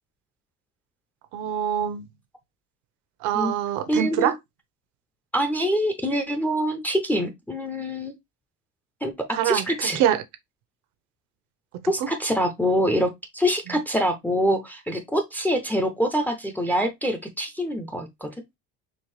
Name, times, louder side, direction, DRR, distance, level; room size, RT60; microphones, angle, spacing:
voice 1, 1.3-2.1 3.2-4.4 9.3-10.2 12.0-12.1, right 10 dB, 70° right, 0.9 m, -24 dB
voice 2, 3.9-4.3 5.3-8.1 9.0-9.1 9.4-10.0 11.9-18.3, equal, 5° left, 0.5 m, -25 dB
4.5 x 3.0 x 3.2 m
cardioid pair, 145°, 30 cm